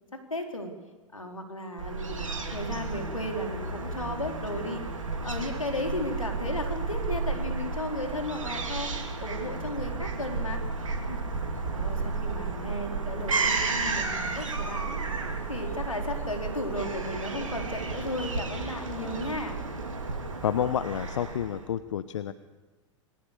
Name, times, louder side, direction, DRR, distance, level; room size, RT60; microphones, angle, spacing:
voice 1, 0.1-0.7 1.1-4.8 5.2-8.9 9.2-10.6 11.1-11.2 11.7-15.0 15.5-19.6, left 1 dB, 90° left, 4 dB, 4.2 m, -35 dB
Fowl / Gull seagull, 1.8-21.7, right 3 dB, 80° right, 3.4 m, -32 dB
sound 1, 13.9-19.4, left 2 dB, 10° left, 4.3 m, -50 dB
voice 2, 20.4-22.3, left 9 dB, 65° left, 13 dB, 1.0 m, -29 dB
28.5 x 22.5 x 6.7 m, 1.2 s
figure-of-eight pair, 100°, 17 cm